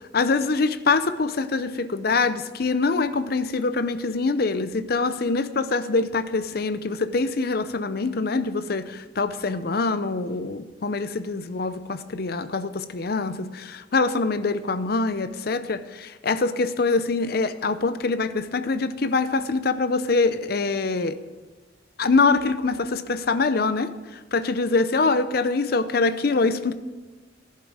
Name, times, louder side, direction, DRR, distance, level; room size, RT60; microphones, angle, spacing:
voice 1, 0.0-21.2 22.0-26.7, left 3 dB, 55° left, 13 dB, 0.6 m, -24 dB
11.5 x 11.5 x 4.8 m, 1.2 s
head